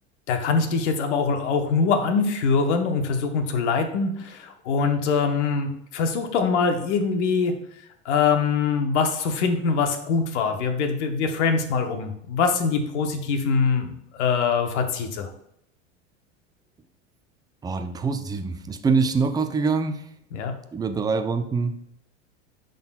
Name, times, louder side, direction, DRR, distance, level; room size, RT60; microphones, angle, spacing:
voice 1, 0.3-7.6 8.0-15.3 20.3-20.5, left 5 dB, 65° left, 6 dB, 1.1 m, -23 dB
voice 2, 17.6-20.0 20.7-21.8, right 4 dB, 10° right, 7 dB, 0.5 m, -24 dB
10.5 x 3.9 x 2.3 m, 0.73 s
hypercardioid pair, 85°, 37 cm